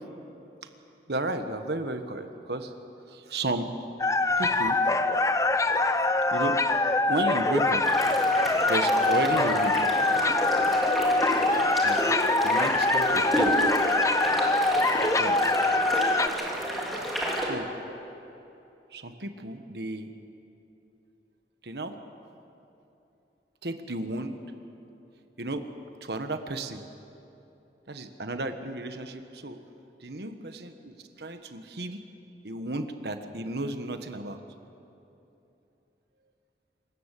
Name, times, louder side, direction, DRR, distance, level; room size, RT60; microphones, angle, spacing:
voice 1, 1.1-2.7 3.1-3.8 4.4-4.8 6.3-6.6 7.1-7.8 8.7-9.8 11.8-12.1 12.4-13.5 15.2-15.4 17.4-17.7 18.9-20.1 21.6-22.0 23.6-24.3 25.4-25.6 26.0-26.8 27.9-29.6 30.0-32.0 32.4-34.4, right 2 dB, 65° right, 8 dB, 1.4 m, -33 dB
sound 1, 4.0-16.3, left 2 dB, 20° left, 0.7 m, -24 dB
sound 2, 7.8-17.5, equal, ahead, 3.3 m, -30 dB
27.0 x 14.5 x 8.4 m, 2.9 s
head